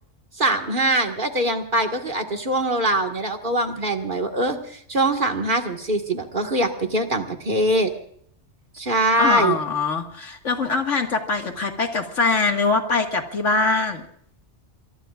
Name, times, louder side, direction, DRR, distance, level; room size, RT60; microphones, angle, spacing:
voice 1, 0.4-7.9 8.7-9.6, right 2 dB, 45° right, 3 dB, 2.0 m, -23 dB
voice 2, 9.2-14.1, left 4 dB, 90° left, 4 dB, 2.3 m, -23 dB
24.5 x 23.0 x 2.5 m, 0.64 s
omnidirectional pair, 1.2 m